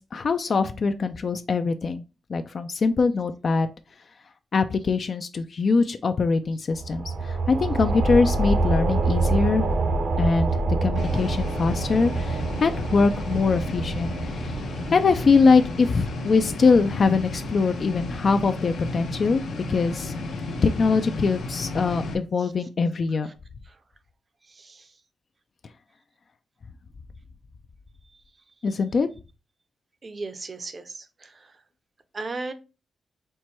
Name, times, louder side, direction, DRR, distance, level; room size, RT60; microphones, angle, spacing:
voice 1, 0.0-2.0 2.3-3.7 4.5-9.6 10.2-14.6 14.9-19.4 19.7-20.1 20.6-23.3 28.6-29.1, left 4 dB, 50° left, 8 dB, 0.3 m, -23 dB
sound 1, 6.7-17.9, right 3 dB, 70° right, 0.9 m, -27 dB
sound 2, 11.0-22.1, left 2 dB, 80° left, 0.7 m, -33 dB
voice 2, 24.5-24.9 30.0-31.5 32.1-32.5, right 3 dB, 40° right, 10 dB, 0.6 m, -36 dB
4.5 x 2.2 x 4.3 m, 0.30 s
cardioid pair, 90°, 0 cm